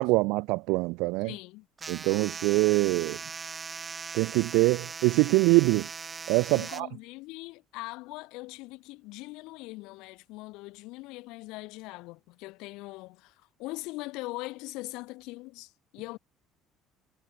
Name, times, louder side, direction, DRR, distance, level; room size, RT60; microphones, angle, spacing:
voice 1, 0.0-1.3 1.9-3.2 4.1-5.9 6.3-6.9, right 24 dB, 85° right, 0.3 m, -24 dB
voice 2, 1.2-1.7 6.5-16.2, left 22 dB, 75° left, 2.9 m, -41 dB
sound 1, 1.8-6.8, right 5 dB, 20° right, 0.6 m, -39 dB
cardioid pair, 175°, 0 cm